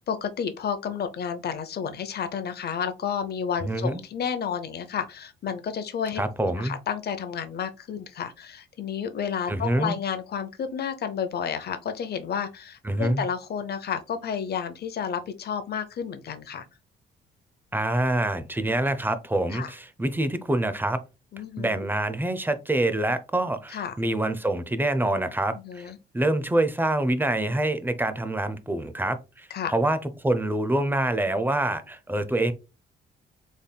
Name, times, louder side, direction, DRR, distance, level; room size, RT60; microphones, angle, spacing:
voice 1, 0.1-6.2 6.6-16.7 19.5-19.7 21.3-21.8 23.7-23.9 25.5-26.0 29.5-29.7, left 7 dB, 55° left, 0.7 m, -31 dB
voice 2, 3.6-4.0 6.2-6.8 9.5-10.0 12.8-13.2 17.7-21.0 21.6-32.5, right 1 dB, 10° right, 0.5 m, -26 dB
4.1 x 3.4 x 2.2 m
cardioid pair, 90°, 20 cm